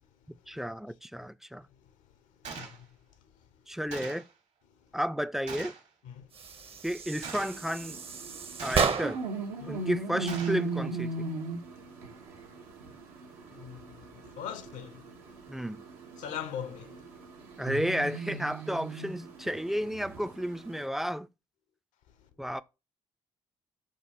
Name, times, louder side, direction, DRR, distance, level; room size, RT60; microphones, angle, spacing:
voice 1, 0.5-1.7 3.7-4.2 4.9-5.7 6.8-8.0 8.6-9.2 9.7-11.3 15.5-15.8 17.6-21.3 22.4-22.6, equal, 5° right, 0.3 m, -32 dB
Gunshot gunfire, 2.4-2.8 3.9-4.3 5.5-5.9 7.2-7.6 8.6-9.1 10.3-10.7, right 5 dB, 65° right, 1.2 m, -41 dB
voice 2, 2.6-3.0 6.0-6.3 9.6-9.9 13.5-15.0 16.2-17.0, left 9 dB, 75° left, 0.7 m, -41 dB
sound 1, 6.3-9.4, right 5 dB, 45° right, 0.7 m, -32 dB
sound 2, 7.4-20.9, right 3 dB, 85° right, 0.8 m, -39 dB
4.9 x 2.4 x 4.2 m
hypercardioid pair, 50°, 13 cm